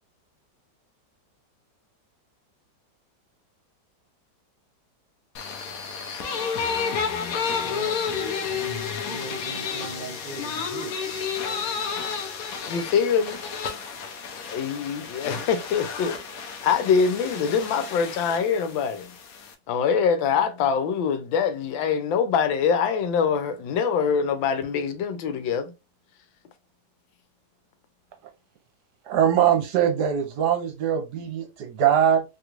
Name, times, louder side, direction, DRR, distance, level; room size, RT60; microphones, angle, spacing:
sound 1, 5.3-19.5, left 6 dB, 70° left, 0.8 m, -31 dB
voice 1, 7.6-11.2, right 2 dB, 85° right, 0.4 m, -40 dB
voice 2, 12.7-13.4 14.5-16.2 16.6-19.1 19.7-25.7, left 6 dB, 85° left, 1.4 m, -24 dB
voice 3, 29.1-32.2, right 9 dB, 70° right, 1.2 m, -22 dB
3.3 x 3.0 x 2.4 m
omnidirectional pair, 2.0 m